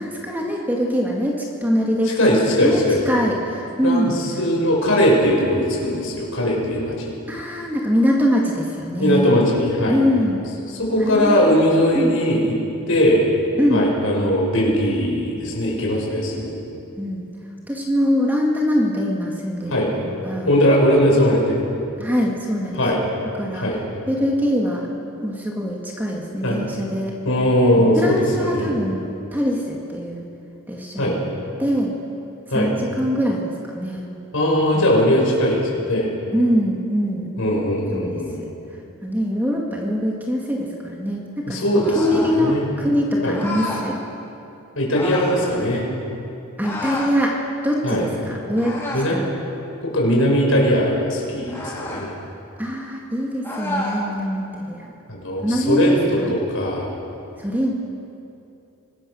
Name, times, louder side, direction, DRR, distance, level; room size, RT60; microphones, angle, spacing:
voice 1, 0.0-2.2 2.6-4.2 7.3-9.3 9.9-10.4 11.1-11.5 11.9-12.1 13.6-13.9 17.0-17.3 17.7-19.8 20.0-20.5 22.0-22.8 23.4-23.7 24.1-24.9 25.2-27.1 28.0-29.1 29.3-30.2 30.7-31.3 31.6-31.9 32.5-34.1 34.7-35.0 36.3-37.3 37.9-38.5 39.0-41.6 41.9-44.0 46.6-47.4 47.6-48.8 49.1-49.2 52.6-54.9 55.4-56.3 57.4-57.7, equal, 10° right, -2 dB, 2.3 m, -23 dB
voice 2, 2.2-3.0 3.8-4.1 4.4-7.1 9.0-10.0 10.7-12.5 12.9-13.2 13.7-16.6 19.7-19.9 20.5-21.7 22.8-23.0 23.5-23.8 26.4-26.6 27.2-28.7 31.0-31.1 32.5-32.7 34.3-36.1 37.4-38.4 41.5-42.7 43.2-43.3 44.8-45.9 47.8-48.0 48.9-49.2 49.8-52.1 55.1-56.9, equal, 65° left, -2 dB, 6.2 m, -19 dB
sound 1, 41.8-42.4 43.3-43.9 44.9-45.4 46.6-47.1 48.5-49.2 51.5-52.1 53.4-54.0, left 2 dB, 10° left, 4.0 m, -29 dB
25.0 x 20.5 x 6.6 m, 2.7 s
head